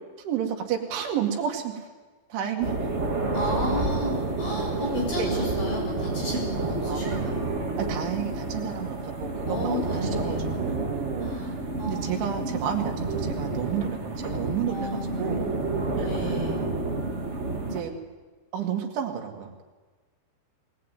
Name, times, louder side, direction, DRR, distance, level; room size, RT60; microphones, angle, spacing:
voice 1, 0.2-1.9 2.3-2.8 5.2-5.3 6.9-7.2 7.8-11.5 11.9-15.5 16.0-16.6 17.7-17.9 18.5-19.6, right 8 dB, 85° right, 3 dB, 4.5 m, -31 dB
sound 1, 2.6-17.8, right 3 dB, 35° right, 1.0 m, -29 dB
voice 2, 3.3-7.3 9.5-10.6 11.2-11.5 11.8-12.5 14.7-16.6, left 1 dB, 50° left, -1 dB, 9.3 m, -33 dB
22.0 x 18.5 x 9.2 m, 1.3 s
omnidirectional pair, 5.3 m